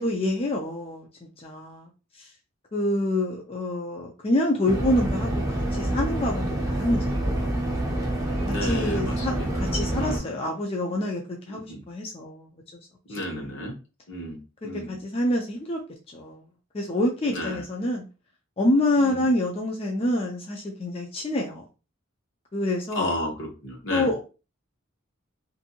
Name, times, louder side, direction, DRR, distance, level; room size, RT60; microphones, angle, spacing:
voice 1, 0.0-1.9 2.1-2.3 2.7-7.1 7.5-7.6 8.5-12.5 13.2-13.5 14.6-15.8 16.1-16.4 16.7-18.0 18.6-21.6 22.5-23.1 23.9-24.2, left 1 dB, 30° left, 0 dB, 0.4 m, -27 dB
sound 1, 4.7-10.2, right 1 dB, 15° right, 0.6 m, -27 dB
voice 2, 8.5-10.3 11.5-11.8 13.1-13.7 14.1-15.0 17.3-17.6 19.0-19.3 22.9-24.1, equal, 70° left, 0 dB, 1.0 m, -33 dB
2.6 x 2.6 x 2.7 m, 0.32 s
head